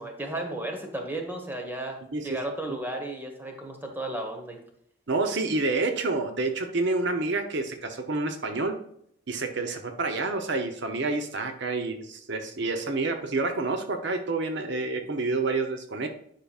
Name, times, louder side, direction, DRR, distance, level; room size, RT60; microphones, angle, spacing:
voice 1, 0.0-2.0 2.2-4.6, right 1 dB, 10° right, 3 dB, 1.2 m, -34 dB
voice 2, 5.1-8.8 9.3-16.1, right 3 dB, 60° right, 6 dB, 0.7 m, -28 dB
10.5 x 5.7 x 2.4 m, 0.70 s
head